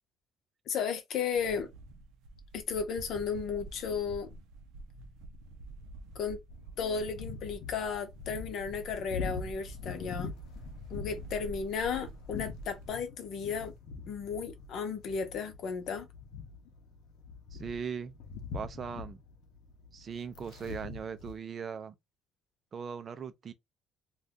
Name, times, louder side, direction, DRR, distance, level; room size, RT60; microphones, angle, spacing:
voice 1, 0.7-1.7 2.5-4.3 6.1-6.4 6.8-10.3 10.9-13.7 14.1-16.1, left 6 dB, 50° left, 0.8 m, -34 dB
sound 1, 1.3-12.9, right 2 dB, 80° right, 0.5 m, -48 dB
sound 2, 6.5-21.4, left 4 dB, 85° left, 0.7 m, -44 dB
voice 2, 17.5-18.1 18.5-19.2 19.9-22.0 22.7-23.5, right 6 dB, 30° right, 0.4 m, -39 dB
2.6 x 2.3 x 3.4 m
cardioid pair, 180°, 0 cm